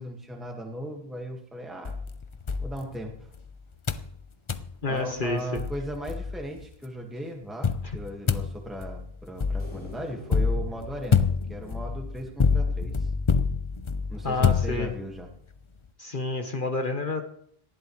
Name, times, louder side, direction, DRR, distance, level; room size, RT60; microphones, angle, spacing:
voice 1, 0.0-2.0 2.6-3.3 4.9-13.1 14.1-15.3, right 1 dB, ahead, 1 dB, 1.7 m, -37 dB
sound 1, 1.8-3.4 3.9-4.1 4.5-4.7 5.2-5.3 5.6-6.7 7.6-15.2, left 5 dB, 35° left, 0.6 m, -27 dB
voice 2, 4.8-5.6 14.2-14.9 16.0-17.2, left 3 dB, 50° left, 4 dB, 1.4 m, -29 dB
sound 2, 9.6-13.0, left 1 dB, 15° left, 3.5 m, -48 dB
19.0 x 14.0 x 3.2 m, 0.65 s
omnidirectional pair, 1.1 m